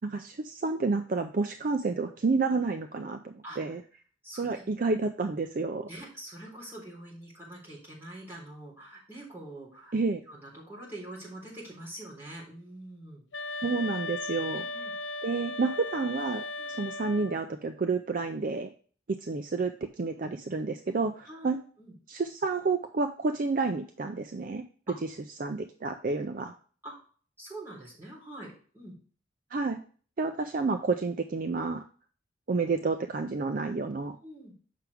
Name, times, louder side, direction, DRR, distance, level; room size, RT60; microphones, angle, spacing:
voice 1, 0.0-3.8 4.4-5.9 9.9-10.2 13.6-14.6 15.2-18.7 19.1-21.6 22.1-24.6 25.4-26.5 29.5-29.8 30.2-31.8 32.5-34.2, right 4 dB, 45° right, 7 dB, 0.4 m, -30 dB
voice 2, 3.4-3.8 4.2-4.6 5.9-9.9 10.3-13.2 14.5-14.9 16.6-16.7 21.3-21.9 24.9-25.0 26.8-27.0 27.4-29.0 34.2-34.5, right 1 dB, 10° right, -6 dB, 3.7 m, -45 dB
sound 1, 13.3-17.5, left 2 dB, 70° left, 0.5 m, -36 dB
7.5 x 5.8 x 3.5 m, 0.42 s
head